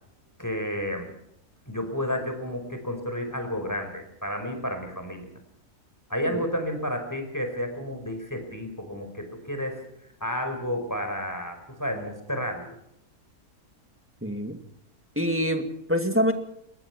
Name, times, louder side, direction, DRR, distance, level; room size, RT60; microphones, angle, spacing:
voice 1, 0.4-1.1 1.7-5.3 6.1-9.8 10.2-12.7, left 1 dB, 10° left, 6 dB, 5.0 m, -31 dB
voice 2, 14.2-14.6 15.2-16.3, equal, 10° right, 6 dB, 2.1 m, -25 dB
23.5 x 21.0 x 6.0 m, 0.77 s
omnidirectional pair, 1.6 m